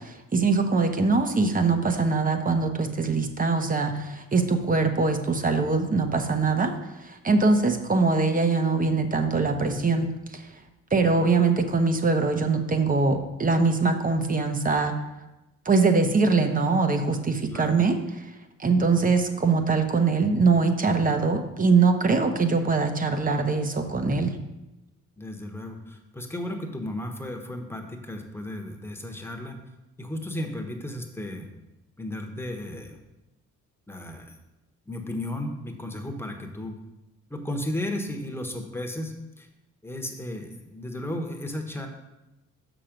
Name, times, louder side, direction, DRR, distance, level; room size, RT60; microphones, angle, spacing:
voice 1, 0.1-6.7 7.0-10.1 10.3-10.4 10.9-14.9 15.7-18.0 18.6-24.3, right 4 dB, 30° right, 7 dB, 0.9 m, -22 dB
voice 2, 25.2-29.6 30.0-31.5 32.0-33.0 33.9-34.3 34.9-36.8 37.3-39.5 39.8-41.9, left 1 dB, 10° left, 3 dB, 1.2 m, -34 dB
6.5 x 6.1 x 5.1 m, 0.97 s
cardioid pair, 90°, 30 cm